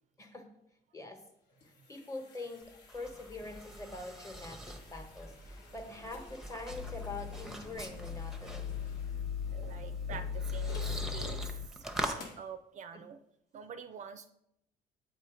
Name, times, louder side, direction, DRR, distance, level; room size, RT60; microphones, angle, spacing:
sound 1, 1.2-11.0 11.5-11.6 12.2-12.5, left 3 dB, 75° left, 1.2 m, -55 dB
voice 1, 1.6-8.7 12.9-13.0, left 2 dB, 20° left, 5 dB, 1.1 m, -44 dB
sound 2, 2.6-12.2, right 1 dB, ahead, 0.7 m, -44 dB
sound 3, 6.7-11.7, left 7 dB, 50° left, 0.5 m, -38 dB
voice 2, 9.5-13.2 13.5-14.3, right 7 dB, 45° right, 9 dB, 0.4 m, -47 dB
7.9 x 2.7 x 4.9 m, 0.78 s
cardioid pair, 110°, 17 cm